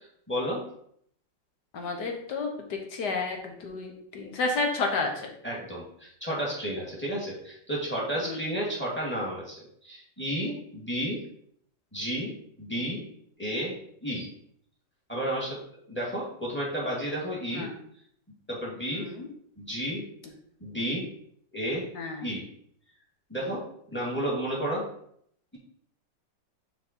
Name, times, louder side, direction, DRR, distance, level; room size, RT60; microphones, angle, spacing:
voice 1, 0.3-0.6 5.4-11.2 11.9-13.0 13.4-13.7 14.0-14.3 15.1-15.6 15.9-17.7 18.5-19.1 19.6-20.0 20.6-21.1 21.5-21.9 22.2-22.5 23.3-24.9, equal, 5° left, -4 dB, 2.3 m, -32 dB
voice 2, 1.7-5.3 8.2-8.4 12.8-12.9 17.5-17.8 18.9-19.3 21.9-22.3 23.4-23.5, left 3 dB, 65° left, 3 dB, 1.6 m, -31 dB
6.0 x 4.6 x 4.4 m, 0.67 s
omnidirectional pair, 2.0 m